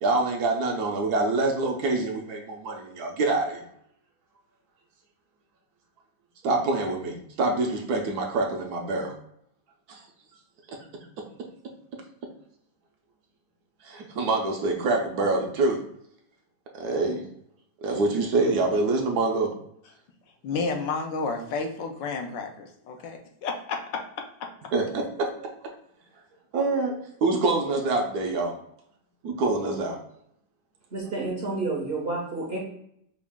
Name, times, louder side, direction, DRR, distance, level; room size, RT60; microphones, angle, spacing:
voice 1, 0.0-3.6 6.4-9.1 9.9-10.0 10.7-10.8 13.8-15.8 16.7-17.2 17.8-19.5 24.7-25.3 26.5-28.6 29.2-30.0, right 3 dB, 65° right, 1 dB, 1.1 m, -26 dB
voice 2, 20.4-24.0 24.4-24.5, left 4 dB, 80° left, 3 dB, 1.4 m, -31 dB
voice 3, 30.9-32.6, right 3 dB, 50° right, -3 dB, 0.8 m, -30 dB
5.0 x 2.4 x 3.5 m, 0.73 s
omnidirectional pair, 2.0 m